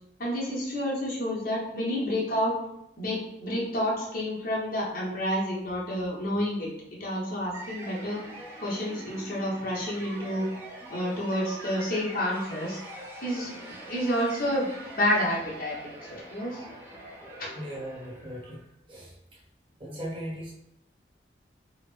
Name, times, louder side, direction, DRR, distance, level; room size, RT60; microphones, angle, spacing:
voice 1, 0.2-2.5 3.0-6.7 7.0-8.2 8.6-10.5 10.9-12.8 13.2-14.7 15.0-16.6 17.4-17.5, equal, 55° left, -5 dB, 1.1 m, -29 dB
sound 1, 7.5-18.7, right 1 dB, 15° right, 0.7 m, -44 dB
voice 2, 17.5-18.6 18.9-19.4 19.8-20.5, equal, 30° right, -5 dB, 1.0 m, -38 dB
3.8 x 2.1 x 3.3 m, 0.79 s
head